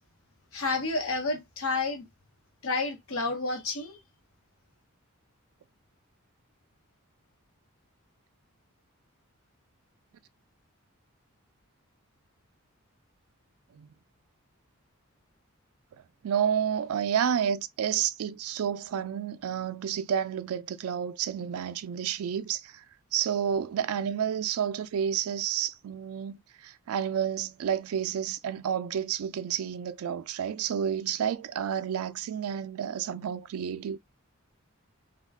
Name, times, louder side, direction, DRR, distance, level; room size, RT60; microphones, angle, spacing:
voice 1, 0.5-2.1 2.6-4.0, left 3 dB, 65° left, 0.8 m, -30 dB
voice 2, 16.2-22.8 23.1-34.0, right 8 dB, 75° right, 0.3 m, -30 dB
2.3 x 2.2 x 3.4 m
head